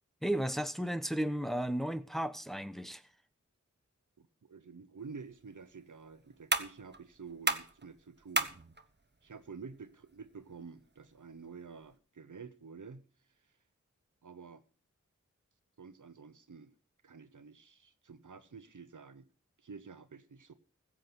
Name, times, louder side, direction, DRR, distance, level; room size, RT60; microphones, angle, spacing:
voice 1, 0.2-3.0, right 1 dB, ahead, 1.0 m, -34 dB
voice 2, 4.2-8.5 9.2-13.1 14.2-14.6 15.8-16.7 17.0-19.3 19.6-20.5, right 5 dB, 90° right, 1.1 m, -49 dB
sound 1, 5.0-12.0, right 3 dB, 35° right, 1.1 m, -39 dB
15.5 x 7.5 x 6.1 m
wide cardioid pair, 45°, 30 cm